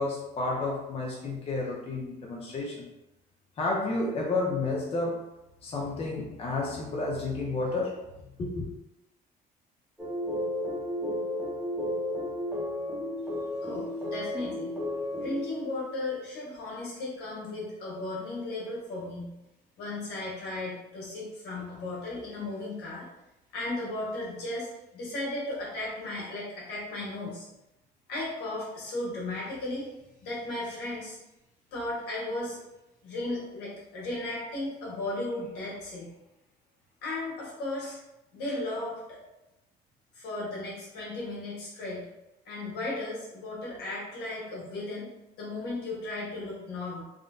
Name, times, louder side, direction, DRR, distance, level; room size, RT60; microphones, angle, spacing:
voice 1, 0.0-2.9 3.6-5.2 5.6-8.0 8.4-8.7, left 2 dB, 35° left, -3 dB, 0.6 m, -31 dB
sound 1, 10.0-15.9, left 1 dB, 5° right, 0.8 m, -33 dB
voice 2, 13.6-14.7 15.2-19.3 19.8-23.1 23.5-24.7 24.9-27.5 28.1-31.2 31.7-32.6 33.0-36.1 37.0-38.0 38.3-39.2 40.1-42.1 42.4-45.1 45.4-47.0, left 2 dB, 80° left, -5 dB, 1.4 m, -35 dB
3.6 x 2.1 x 2.5 m, 0.93 s
cardioid pair, 110°, 17 cm